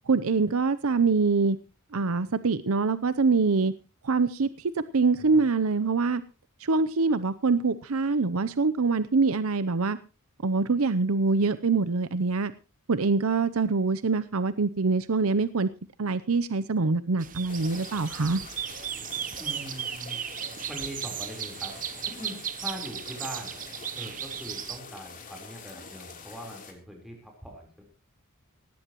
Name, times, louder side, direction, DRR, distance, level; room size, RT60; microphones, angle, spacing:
voice 1, 0.1-1.6 1.9-3.7 4.0-4.5 4.9-6.2 6.6-10.0 10.4-12.5 12.9-15.7 16.0-18.4, right 4 dB, 75° right, 14 dB, 0.7 m, -24 dB
sound 1, 17.2-24.8, right 9 dB, 40° right, 0.8 m, -36 dB
sound 2, 17.5-26.7, left 5 dB, 40° left, 3.4 m, -46 dB
voice 2, 19.4-20.2 20.7-21.8 22.1-23.6 24.0-27.8, equal, ahead, 0 dB, 4.0 m, -42 dB
18.0 x 16.5 x 3.0 m, 0.32 s
head